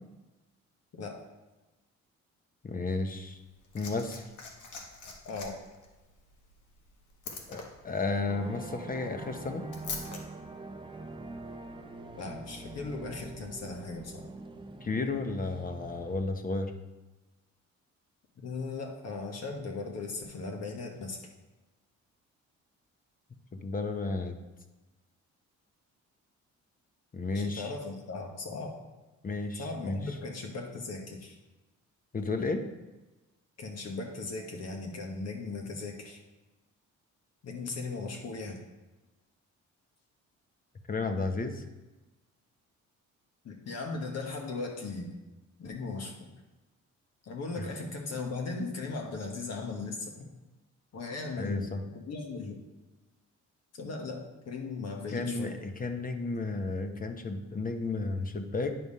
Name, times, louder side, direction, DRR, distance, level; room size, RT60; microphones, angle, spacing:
voice 1, 2.6-3.4 3.7-4.2 7.5-9.7 14.8-16.7 23.5-24.4 27.1-27.7 29.2-30.1 32.1-32.6 40.9-41.6 47.6-47.7 51.4-51.8 55.1-58.8, left 3 dB, 30° left, 7 dB, 0.9 m, -33 dB
Liquid, 3.3-10.2 11.3-11.4, left 4 dB, 75° left, 1.3 m, -45 dB
voice 2, 5.2-5.6 12.2-14.3 18.4-21.3 27.3-28.7 29.5-31.4 33.6-36.2 37.4-38.6 43.4-45.1 45.6-46.3 47.2-50.3 50.9-51.7 51.9-52.6 53.7-55.5, left 3 dB, 55° left, 2 dB, 1.5 m, -38 dB
sound 1, 8.3-16.2, right 2 dB, 15° right, 0.7 m, -44 dB
9.4 x 3.4 x 5.5 m, 1.1 s
cardioid pair, 90°, 30 cm